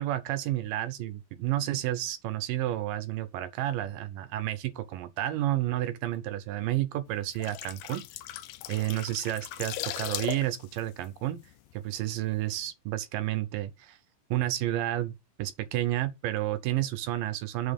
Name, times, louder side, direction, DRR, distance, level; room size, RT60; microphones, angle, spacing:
voice 1, 0.0-8.0 8.7-11.4 11.7-14.0 14.3-17.7, right 14 dB, 75° right, 2.2 m, -31 dB
sound 1, 7.2-12.0 12.3-12.5, left 13 dB, 85° left, 2.5 m, -38 dB
7.0 x 4.0 x 5.2 m
omnidirectional pair, 4.3 m